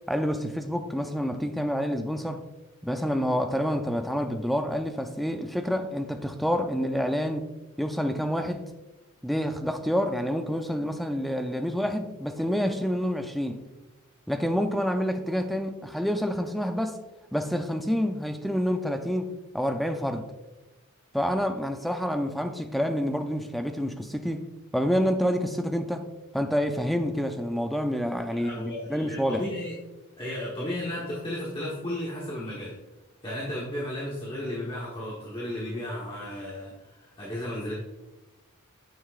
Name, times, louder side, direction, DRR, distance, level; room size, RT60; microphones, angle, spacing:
voice 1, 0.1-2.4 2.8-7.5 7.8-8.6 9.2-13.6 14.3-17.0 17.3-20.3 21.1-24.5 24.7-26.1 26.3-29.4, equal, ahead, 6 dB, 0.4 m, -28 dB
voice 2, 28.3-29.7 30.2-32.8 33.2-37.7, left 1 dB, 25° left, -5 dB, 1.1 m, -34 dB
9.3 x 6.0 x 2.4 m, 1.1 s
head